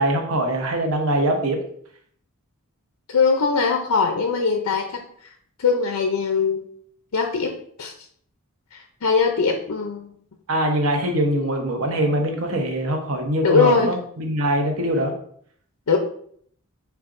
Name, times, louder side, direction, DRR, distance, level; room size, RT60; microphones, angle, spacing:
voice 1, 0.0-1.6 10.5-15.1, right 1 dB, 70° right, 3 dB, 0.9 m, -22 dB
voice 2, 3.1-5.3 5.6-6.6 7.1-7.5 7.8-7.9 8.7-10.1 13.4-13.9 15.9-16.0, left 5 dB, 90° left, 3 dB, 0.5 m, -21 dB
4.6 x 4.4 x 2.5 m, 0.63 s
head